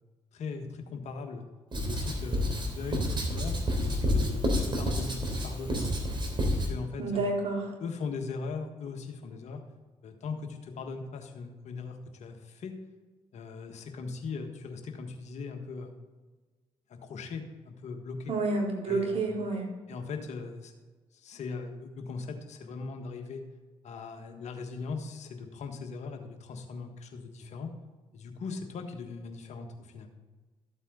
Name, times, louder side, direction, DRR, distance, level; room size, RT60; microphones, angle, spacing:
voice 1, 0.3-1.4 1.8-6.0 6.5-7.3 7.8-9.6 10.0-12.8 13.3-16.0 16.9-18.3 18.9-19.3 19.9-20.7 21.1-23.4 23.8-27.7 28.1-30.1, left 4 dB, 60° left, 5 dB, 1.5 m, -39 dB
Writing, 1.7-6.7, equal, 40° right, 3.3 m, -29 dB
voice 2, 7.0-7.7 18.3-19.7, right 3 dB, 55° right, -2 dB, 4.0 m, -29 dB
13.5 x 8.1 x 3.9 m, 1.3 s
hypercardioid pair, 45°, 13 cm